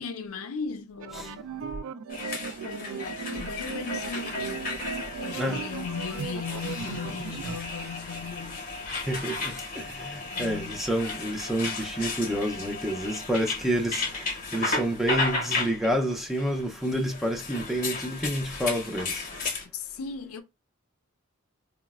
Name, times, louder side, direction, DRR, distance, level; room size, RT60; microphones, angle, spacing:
voice 1, 0.0-1.5 2.6-4.7 5.2-8.6 10.3-10.8 19.7-20.4, left 5 dB, 75° left, 0.5 m, -37 dB
sound 1, 1.0-7.6, right 6 dB, 65° right, 0.3 m, -37 dB
sound 2, 2.1-19.6, left 3 dB, 40° left, 0.8 m, -34 dB
voice 2, 5.3-5.7 9.1-19.3, equal, ahead, 0.4 m, -29 dB
3.9 x 2.0 x 2.3 m
head